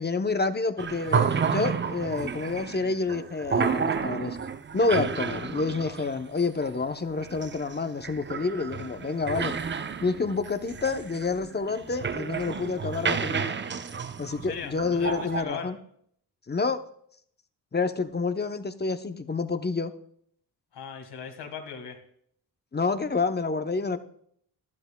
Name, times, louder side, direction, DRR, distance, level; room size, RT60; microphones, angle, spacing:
voice 1, 0.0-4.4 4.7-9.5 10.0-13.5 14.2-15.8 16.5-16.8 17.7-19.9 22.7-24.0, left 4 dB, 25° left, 9 dB, 0.7 m, -28 dB
sound 1, 0.8-15.4, right 6 dB, 25° right, 0.5 m, -31 dB
voice 2, 14.4-15.7 20.7-22.0, left 6 dB, 70° left, 5 dB, 1.8 m, -38 dB
12.0 x 12.0 x 2.2 m, 0.66 s
cardioid pair, 60°, 41 cm